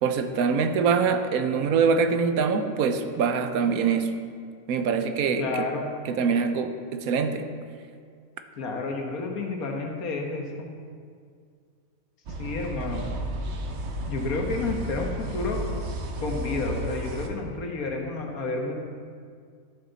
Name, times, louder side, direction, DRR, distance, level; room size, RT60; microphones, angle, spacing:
voice 1, 0.0-4.2 4.7-5.7 6.1-7.5, right 5 dB, 75° right, 8 dB, 1.1 m, -24 dB
voice 2, 5.4-5.8 8.6-10.7 12.4-13.1 14.1-15.7 16.2-18.8, left 3 dB, 75° left, 1 dB, 1.6 m, -30 dB
sound 1, 12.3-17.3, right 1 dB, 55° right, 1.0 m, -33 dB
12.0 x 7.2 x 4.0 m, 2.1 s
omnidirectional pair, 1.5 m